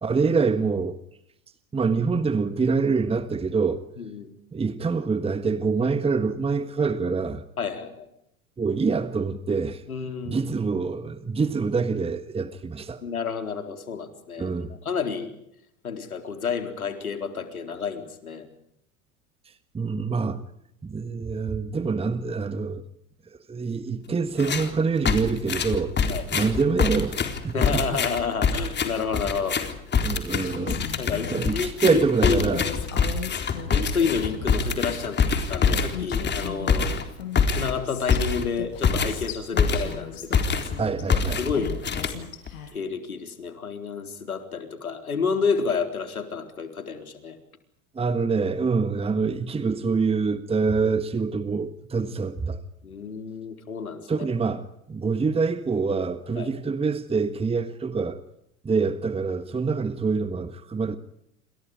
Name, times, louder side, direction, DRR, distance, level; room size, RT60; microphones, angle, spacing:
voice 1, 0.0-1.0 1.7-3.9 4.5-7.4 8.6-9.8 10.2-13.0 14.4-14.7 19.4-20.4 20.8-22.9 23.3-26.0 26.3-28.0 30.0-32.7 40.8-41.4 47.9-52.6 54.1-58.2 58.6-61.0, right 4 dB, 15° right, 1.5 m, -26 dB
voice 2, 4.0-4.3 7.6-8.1 9.9-10.4 13.0-15.3 15.8-18.5 26.1-26.2 27.5-29.6 31.0-32.6 33.6-35.2 35.5-37.0 37.5-40.4 41.4-41.8 42.7-47.4 52.8-54.3 56.4-56.5, left 5 dB, 80° left, 4.1 m, -30 dB
sound 1, 24.4-24.7 25.1-40.0 40.3-40.8 41.1-42.5, left 5 dB, 25° left, 4.0 m, -25 dB
Female speech woman speaking, 30.4-31.7 32.5-34.8 35.4-35.5 35.7-38.2 38.6-41.0 41.5-42.7, left 9 dB, 65° left, 7.7 m, -38 dB
28.5 x 27.5 x 5.1 m
figure-of-eight pair, 85°, 42 cm